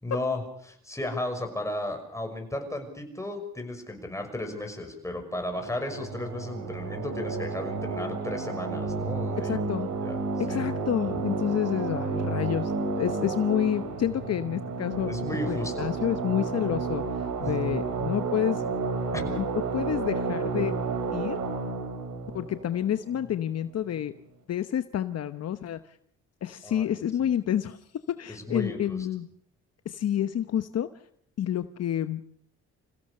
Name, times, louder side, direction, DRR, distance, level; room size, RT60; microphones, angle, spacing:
voice 1, 0.0-9.6 10.0-10.2 10.5-10.7 15.1-15.9 17.4-17.6 19.1-19.2 26.6-27.0 28.3-29.1, left 1 dB, 10° left, 4 dB, 5.9 m, -34 dB
sound 1, 5.5-23.6, right 4 dB, 75° right, 3.9 m, -31 dB
voice 2, 9.4-9.9 10.4-12.7 13.0-15.1 15.5-17.0 17.4-18.6 19.4-19.5 19.7-20.7 21.1-21.4 22.3-24.1 24.5-25.8 26.4-27.8 28.2-29.3 29.8-30.9 31.4-32.3, left 10 dB, 55° left, 10 dB, 1.0 m, -29 dB
27.0 x 16.5 x 6.7 m, 0.68 s
cardioid pair, 90°, 30 cm